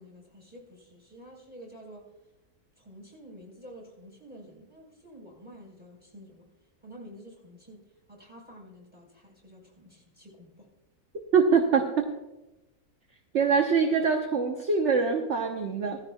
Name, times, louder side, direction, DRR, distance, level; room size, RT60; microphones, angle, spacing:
voice 1, 0.0-2.1 2.8-6.5 6.8-10.7, equal, 5° right, -2 dB, 4.2 m, -49 dB
voice 2, 11.3-12.1 13.3-16.0, right 5 dB, 50° right, 3 dB, 1.2 m, -24 dB
16.5 x 14.5 x 2.3 m, 0.98 s
omnidirectional pair, 1.6 m